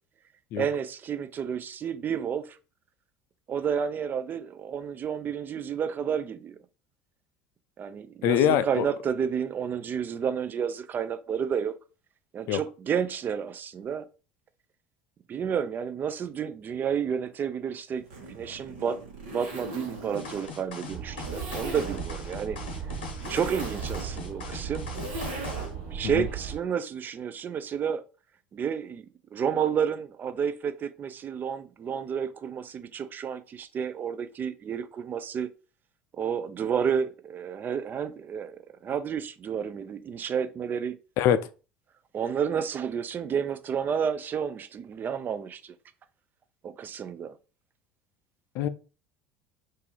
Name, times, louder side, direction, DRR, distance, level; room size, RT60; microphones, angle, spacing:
voice 1, 0.6-2.6 3.5-6.6 7.8-11.8 12.3-14.1 15.3-18.0 18.3-19.0 19.3-22.6 23.3-24.9 25.9-28.0 28.5-29.0 29.3-35.5 36.1-41.0 42.1-45.7 46.6-47.3, right 7 dB, 35° right, 0.4 m, -30 dB
voice 2, 8.2-8.9 12.5-12.6 26.0-26.3 41.2-41.4 48.6-48.7, left 10 dB, 55° left, 0.4 m, -23 dB
Zipper (clothing), 18.0-25.9, right 1 dB, 70° right, 1.2 m, -40 dB
sound 1, 20.1-25.7, left 4 dB, 80° left, 0.7 m, -41 dB
sound 2, 20.9-26.6, right 7 dB, 50° right, 1.3 m, -37 dB
2.7 x 2.6 x 3.9 m
hypercardioid pair, 70°, 5 cm